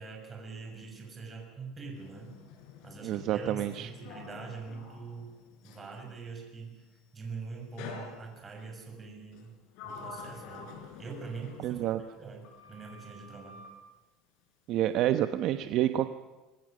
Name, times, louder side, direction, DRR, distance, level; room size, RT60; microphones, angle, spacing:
voice 1, 0.0-2.3 2.8-5.3 5.6-6.8 7.1-9.5 9.8-10.7 11.0-13.6, right 4 dB, 20° right, 2 dB, 6.6 m, -43 dB
Sliding door, 1.9-6.0 7.8-8.7 9.3-12.2 12.4-13.8, left 4 dB, 65° left, 5.0 m, -48 dB
voice 2, 3.0-3.9 11.6-12.0 14.7-16.1, right 12 dB, 50° right, 9 dB, 1.0 m, -28 dB
26.5 x 20.5 x 6.6 m, 1.2 s
cardioid pair, 155°, 0 cm